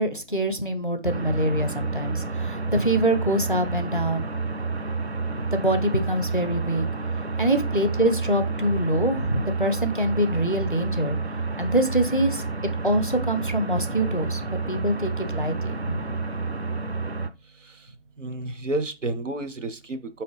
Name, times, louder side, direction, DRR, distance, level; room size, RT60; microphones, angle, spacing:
voice 1, 0.0-4.3 5.5-6.9 7.4-11.2 11.6-12.4 12.8-14.4 14.7-16.1, right 1 dB, 45° left, 9 dB, 0.4 m, -24 dB
sound 1, 1.0-17.3, right 3 dB, 60° right, 0.5 m, -29 dB
voice 2, 18.2-20.2, right 2 dB, 85° right, 10 dB, 0.8 m, -30 dB
4.8 x 2.9 x 3.2 m, 0.28 s
figure-of-eight pair, 175°, 36 cm